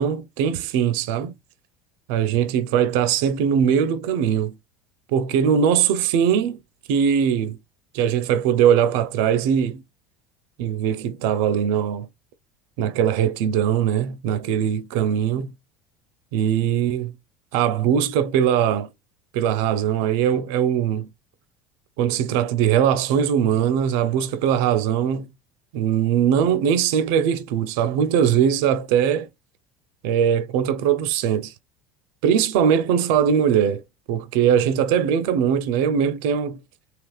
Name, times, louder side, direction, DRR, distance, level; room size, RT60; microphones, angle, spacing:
voice 1, 0.0-1.3 2.1-4.6 5.1-6.6 6.9-7.6 7.9-9.8 10.6-12.1 12.8-15.5 16.3-17.1 17.5-18.9 19.3-21.1 22.0-25.3 25.7-29.3 30.0-31.5 32.2-33.8 34.1-36.6, right 8 dB, 75° right, 0.4 m, -21 dB
3.4 x 2.8 x 2.3 m
supercardioid pair, 120°, 0 cm